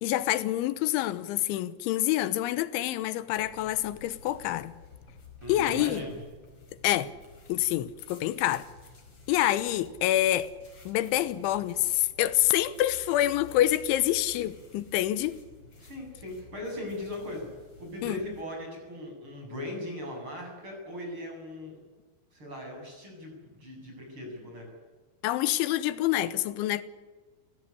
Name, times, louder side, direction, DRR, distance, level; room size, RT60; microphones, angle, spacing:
voice 1, 0.0-4.7 5.5-6.0 6.8-7.1 7.5-8.7 9.3-10.5 10.9-15.4 18.0-18.2 25.2-26.8, left 14 dB, 90° left, 3.4 m, -27 dB
sound 1, 3.4-18.4, left 4 dB, 30° left, 5.5 m, -52 dB
voice 2, 5.4-6.2 15.8-17.5 17.8-21.8 22.3-24.7, left 1 dB, 25° right, 8.6 m, -39 dB
30.0 x 16.5 x 9.9 m
omnidirectional pair, 5.3 m